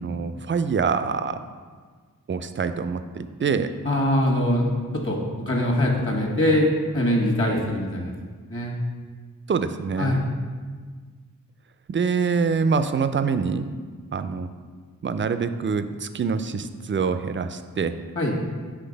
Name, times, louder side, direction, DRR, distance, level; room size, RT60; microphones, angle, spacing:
voice 1, 0.0-1.4 2.3-3.7 9.5-10.1 11.9-13.7 14.1-14.5 15.0-18.0, right 5 dB, 35° right, 10 dB, 0.4 m, -25 dB
voice 2, 3.8-4.7 4.9-6.7 6.9-8.1 8.5-8.7 10.0-10.2 18.1-18.3, left 1 dB, 35° left, -1 dB, 1.4 m, -22 dB
5.9 x 3.2 x 5.1 m, 1.5 s
cardioid pair, 50°, 34 cm